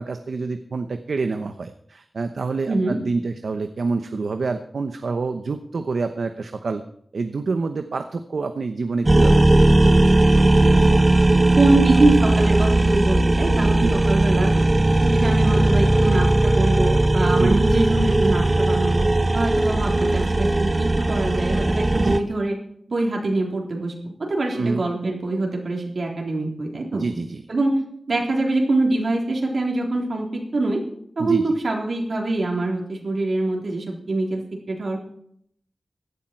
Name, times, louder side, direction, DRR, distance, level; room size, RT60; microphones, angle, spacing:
voice 1, 0.0-6.8 7.1-9.8 13.8-14.1 17.4-17.7 21.9-22.2 24.5-24.8 26.9-27.4 31.2-31.4, right 4 dB, 85° right, 7 dB, 0.9 m, -27 dB
voice 2, 2.7-3.0 10.7-11.0 11.6-14.5 15.0-22.6 22.9-27.0 27.5-27.8 28.1-30.8 31.2-35.0, right 2 dB, 70° right, 0 dB, 3.7 m, -24 dB
sound 1, 9.1-22.2, right 2 dB, 30° right, 0.9 m, -18 dB
16.5 x 11.5 x 4.6 m, 0.67 s
wide cardioid pair, 90°, 0 cm